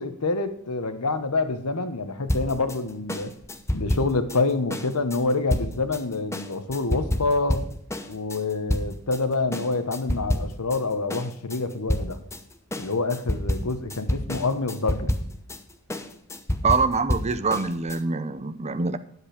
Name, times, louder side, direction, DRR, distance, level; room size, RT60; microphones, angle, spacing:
voice 1, 0.0-3.3 3.7-7.7 8.1-12.2 12.7-15.1, left 3 dB, 85° left, 10 dB, 1.2 m, -27 dB
sound 1, 2.3-9.2 9.5-10.8 11.1-18.0, left 1 dB, 15° left, 0.8 m, -29 dB
voice 2, 16.6-19.0, right 4 dB, 30° right, 10 dB, 0.6 m, -24 dB
9.7 x 8.0 x 5.0 m, 0.67 s
head